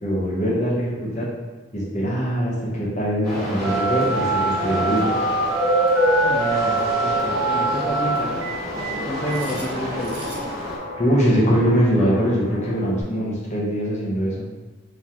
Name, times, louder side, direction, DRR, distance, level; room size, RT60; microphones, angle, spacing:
voice 1, 0.0-1.3 1.7-5.1 11.0-14.4, equal, 35° left, -5 dB, 0.9 m, -22 dB
sound 1, 3.2-10.8, equal, 20° right, 1.1 m, -27 dB
Telephone, 3.6-10.5, right 3 dB, 70° right, 1.4 m, -25 dB
voice 2, 6.2-8.5 8.7-10.2, equal, 15° left, -7 dB, 0.4 m, -30 dB
Guitar, 6.5-13.0, left 2 dB, 90° left, 1.0 m, -34 dB
3.6 x 3.1 x 2.8 m, 1.3 s
head